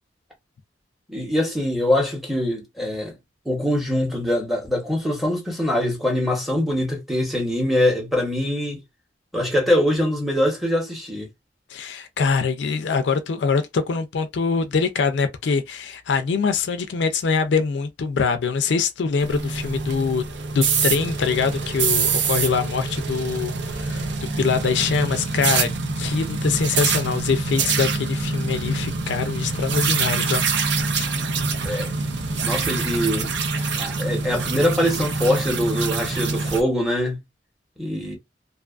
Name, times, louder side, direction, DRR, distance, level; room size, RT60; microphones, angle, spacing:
voice 1, 1.1-3.1 3.4-8.8 9.3-11.3 31.6-32.0 32.4-33.3 33.8-37.2 37.8-38.1, left 1 dB, ahead, 0.9 m, -23 dB
voice 2, 11.7-20.3 20.5-25.7 26.0-30.4 33.6-33.9, left 5 dB, 70° left, 0.4 m, -24 dB
sound 1, 19.2-36.6, right 4 dB, 70° right, 0.6 m, -25 dB
2.6 x 2.3 x 2.4 m
head